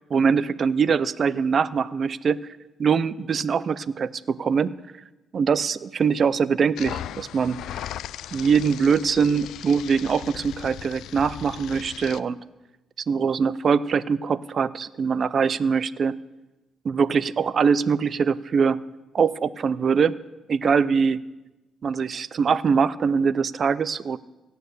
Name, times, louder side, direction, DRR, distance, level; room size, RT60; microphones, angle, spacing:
voice 1, 0.0-2.4 2.8-4.7 5.3-7.6 8.3-12.4 13.1-16.2 16.8-18.8 19.1-20.1 20.5-21.2 21.8-24.2, right 6 dB, 50° right, 19 dB, 0.5 m, -22 dB
sound 1, 6.8-12.2, left 12 dB, 80° left, 0.3 m, -37 dB
17.0 x 6.8 x 6.7 m, 1.0 s
cardioid pair, 90°, 0 cm